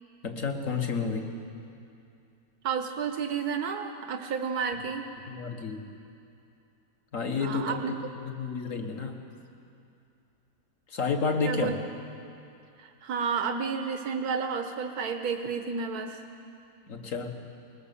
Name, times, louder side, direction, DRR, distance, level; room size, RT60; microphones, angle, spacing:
voice 1, 0.2-1.3 5.3-5.9 7.1-7.8 8.2-9.2 10.9-11.8 16.9-17.3, left 4 dB, 60° left, 4 dB, 1.9 m, -30 dB
voice 2, 2.6-5.0 7.4-8.0 11.4-11.8 12.8-16.2, right 6 dB, 90° right, 6 dB, 1.5 m, -31 dB
21.0 x 20.0 x 7.0 m, 2.6 s
omnidirectional pair, 1.6 m